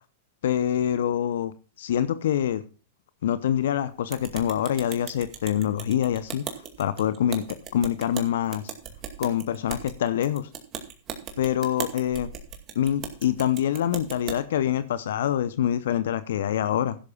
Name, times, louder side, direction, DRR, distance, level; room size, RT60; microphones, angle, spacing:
voice 1, 0.4-2.6 3.2-6.4 6.8-8.7 9.2-10.5 11.4-12.3 12.7-17.0, left 10 dB, 65° left, 0.8 m, -25 dB
sound 1, 4.1-14.4, right 8 dB, 35° right, 2.2 m, -38 dB
15.5 x 11.5 x 2.4 m
hypercardioid pair, 100°, 0 cm